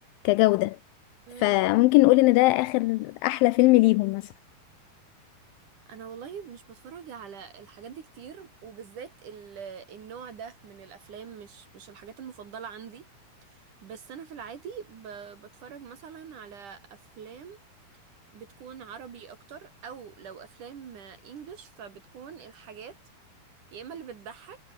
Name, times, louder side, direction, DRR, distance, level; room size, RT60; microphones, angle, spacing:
voice 1, 0.2-0.8 1.4-4.2, left 21 dB, 90° left, 2.0 m, -20 dB
voice 2, 1.3-1.7 5.9-13.1 13.8-17.6 18.3-23.0 23.7-24.6, right 7 dB, 55° right, 3.4 m, -43 dB
omnidirectional pair, 4.6 m